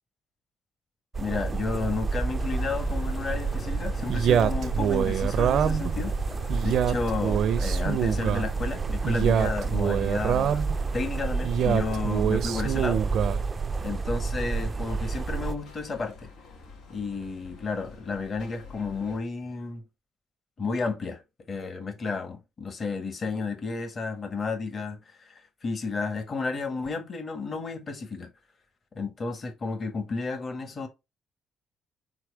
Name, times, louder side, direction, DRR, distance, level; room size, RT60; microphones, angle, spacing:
sound 1, 1.1-15.6, right 4 dB, 35° right, 0.5 m, -30 dB
voice 1, 1.2-6.1 6.6-10.7 10.9-13.2 13.8-16.3 16.9-19.8 20.6-21.2 21.5-28.3 29.0-30.9, left 4 dB, 45° left, 1.7 m, -32 dB
sound 2, 2.4-19.2, left 5 dB, 90° left, 2.7 m, -45 dB
Male speech man speaking, 4.1-5.9 6.5-8.5 9.0-10.7 11.4-13.4, right 8 dB, 70° right, 0.7 m, -25 dB
4.7 x 4.3 x 4.8 m
cardioid pair, 90°, 0 cm